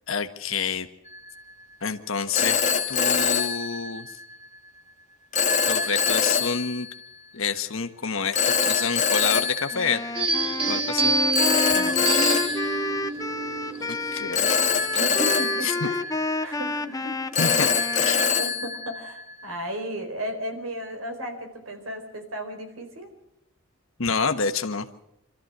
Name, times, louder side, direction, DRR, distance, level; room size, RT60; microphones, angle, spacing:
voice 1, 0.1-0.9 1.8-2.6 2.9-4.1 5.7-6.9 7.3-10.0 10.7-11.1 13.8-14.6 15.6-15.7 17.4-18.3 24.0-24.9, left 5 dB, 70° left, 8 dB, 1.3 m, -28 dB
Telephone, 1.1-1.4 2.3-4.3 5.3-7.1 8.3-10.5 11.3-13.7 14.3-16.7 17.3-19.5, left 6 dB, 35° left, 1.5 m, -25 dB
Wind instrument woodwind instrument, 9.7-18.5, left 2 dB, 15° left, 0.8 m, -31 dB
sound 1, 10.1-15.4, right 2 dB, 25° right, 1.9 m, -27 dB
voice 2, 11.7-12.1 14.9-16.0 16.4-17.7 18.1-23.1, equal, 75° right, 6 dB, 4.3 m, -35 dB
26.5 x 13.5 x 7.9 m, 0.84 s
head